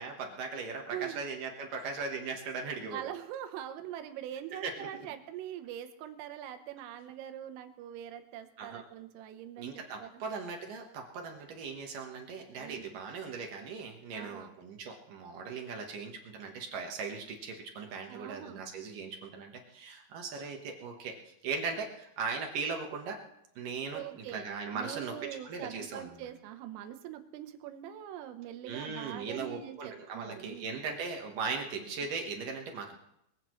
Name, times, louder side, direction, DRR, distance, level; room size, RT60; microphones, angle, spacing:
voice 1, 0.0-3.0 4.5-4.9 8.6-8.8 9.6-21.2 21.4-23.2 23.6-25.1 25.4-26.3 28.6-33.0, right 5 dB, 65° right, 2 dB, 2.1 m, -38 dB
voice 2, 0.9-1.3 2.0-2.1 2.8-10.2 12.6-13.0 14.1-14.5 18.1-18.6 23.9-30.8 31.8-31.9, right 11 dB, 85° right, 8 dB, 3.6 m, -43 dB
22.0 x 15.5 x 3.2 m, 0.79 s
omnidirectional pair, 5.7 m